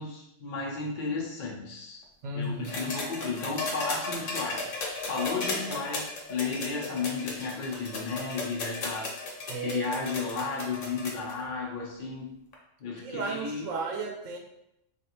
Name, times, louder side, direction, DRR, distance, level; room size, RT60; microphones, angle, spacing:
voice 1, 0.0-2.0 2.3-4.7 5.1-9.1 9.6-12.3 12.8-13.7, left 4 dB, 50° left, -2 dB, 0.6 m, -33 dB
voice 2, 2.2-2.9 9.5-10.0 13.0-14.4, right 3 dB, 80° right, 1 dB, 1.0 m, -34 dB
sound 1, 2.6-11.3 12.5-12.6, left 3 dB, 80° left, 1.1 m, -35 dB
3.3 x 2.4 x 2.9 m, 0.83 s
omnidirectional pair, 1.3 m